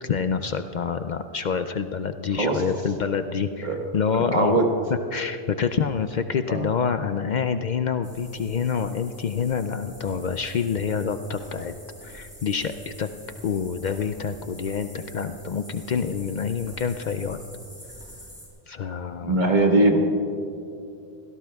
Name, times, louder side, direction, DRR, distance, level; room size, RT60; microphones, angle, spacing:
voice 1, 0.0-4.6 5.1-11.7 12.0-13.1 13.4-17.4 18.7-19.4, left 6 dB, 55° left, 9 dB, 0.5 m, -27 dB
voice 2, 4.1-4.7 6.5-6.6 19.2-20.0, right 2 dB, 45° right, 1 dB, 1.6 m, -21 dB
sound 1, 8.0-18.5, equal, 5° right, 4.0 m, -46 dB
25.5 x 16.5 x 2.3 m, 2.6 s
omnidirectional pair, 1.1 m